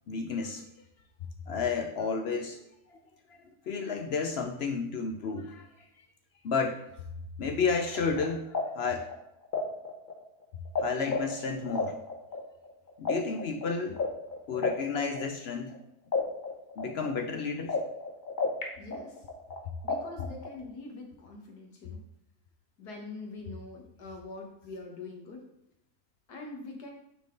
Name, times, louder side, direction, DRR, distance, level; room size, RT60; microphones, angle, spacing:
voice 1, 0.1-0.6 1.5-2.6 2.9-3.0 3.3-5.9 6.4-6.9 7.4-9.1 10.8-12.0 13.0-14.0 14.5-15.8 16.8-17.8, left 5 dB, 60° left, 5 dB, 0.6 m, -32 dB
sound 1, 7.8-10.8 11.1-15.8 16.1-18.6 18.9-20.6, left 4 dB, 35° left, 1.0 m, -32 dB
voice 2, 18.8-19.2 19.8-22.0 22.8-25.4 26.3-26.9, left 3 dB, 90° left, 1 dB, 1.9 m, -44 dB
9.1 x 3.7 x 3.8 m, 0.81 s
omnidirectional pair, 1.6 m